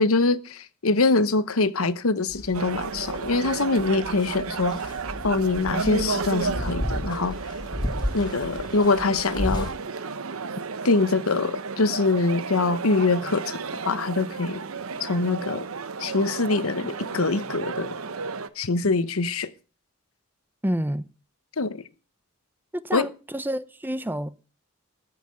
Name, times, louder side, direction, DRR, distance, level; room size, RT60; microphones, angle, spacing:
voice 1, 0.0-4.8 5.2-7.4 8.1-9.7 10.8-13.6 13.8-14.6 15.0-15.6 16.0-18.0 18.6-19.5 21.6-21.8 22.9-23.1, left 3 dB, 85° left, 0.9 m, -24 dB
sound 1, 2.3-9.8, equal, 20° left, 2.1 m, -34 dB
sound 2, 2.5-18.5, right 4 dB, 85° right, 0.9 m, -33 dB
voice 2, 20.6-21.1 22.7-24.3, equal, 10° right, 0.6 m, -28 dB
14.0 x 5.8 x 7.6 m
head